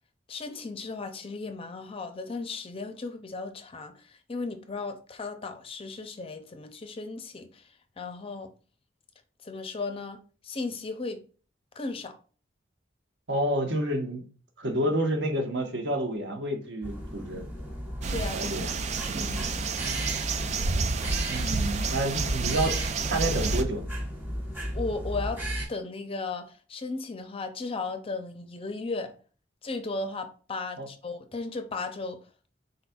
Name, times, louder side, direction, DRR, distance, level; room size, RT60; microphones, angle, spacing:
voice 1, 0.3-3.9 4.3-7.6 8.0-8.5 9.4-10.2 10.4-11.2 11.8-12.2 18.1-18.5 19.2-19.6 24.7-25.4 25.7-29.1 29.6-32.2, left 3 dB, 30° left, 0.5 m, -35 dB
voice 2, 13.3-14.2 14.6-17.5 18.3-18.7 21.3-22.8 23.1-23.8 30.8-30.9, right 1 dB, 75° right, 1.1 m, -29 dB
sound 1, 16.8-25.7, equal, 10° right, 1.4 m, -35 dB
sound 2, 18.0-23.6, right 4 dB, 40° right, 0.3 m, -30 dB
4.0 x 4.0 x 2.3 m
head